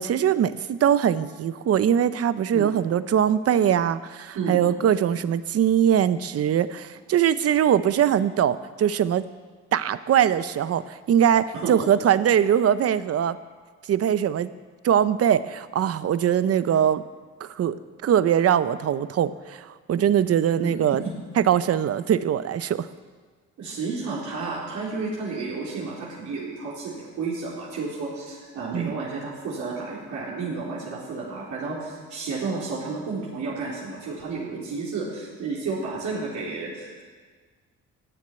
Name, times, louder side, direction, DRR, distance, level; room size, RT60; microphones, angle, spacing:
voice 1, 0.0-9.3 9.7-13.4 13.9-14.5 14.8-17.0 17.4-17.8 18.0-21.0 21.4-22.9 28.7-28.9, right 9 dB, 55° right, 14 dB, 0.7 m, -22 dB
voice 2, 4.3-4.7 11.5-11.9 20.6-21.0 23.6-37.0, right 4 dB, 70° right, -6 dB, 4.0 m, -32 dB
14.0 x 7.5 x 9.7 m, 1.5 s
cardioid pair, 90°, 30 cm